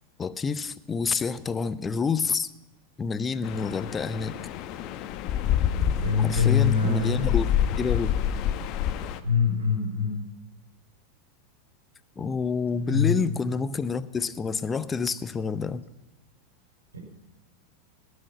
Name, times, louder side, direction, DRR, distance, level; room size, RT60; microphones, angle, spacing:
voice 1, 0.2-2.5 3.0-4.4 6.2-7.5 7.8-8.2 12.2-15.8, left 5 dB, 20° left, 0.7 m, -28 dB
sound 1, 3.4-9.2, left 9 dB, 45° left, 0.9 m, -28 dB
voice 2, 6.0-7.2 9.2-10.2 12.9-13.2 16.9-17.0, left 6 dB, 75° right, 4.2 m, -24 dB
18.5 x 6.5 x 9.4 m
figure-of-eight pair, 90°, 0 cm